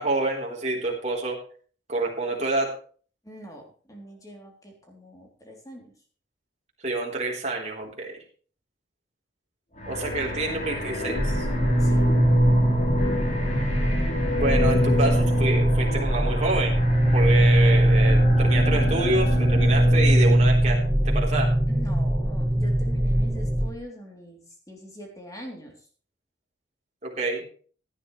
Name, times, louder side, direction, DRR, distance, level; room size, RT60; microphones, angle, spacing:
voice 1, 0.0-1.4 1.9-2.7 6.8-8.2 9.9-11.5 14.3-16.8 17.1-20.8 21.0-21.5 27.0-27.4, right 2 dB, 35° right, -1 dB, 3.7 m, -27 dB
voice 2, 3.2-5.9 11.8-12.1 20.0-21.0 21.7-25.9, equal, 20° left, 1 dB, 3.2 m, -43 dB
sound 1, 9.8-20.5, left 1 dB, 40° left, 3.8 m, -29 dB
sound 2, 11.1-23.7, right 1 dB, ahead, 1.9 m, -21 dB
16.5 x 11.0 x 3.2 m, 0.42 s
head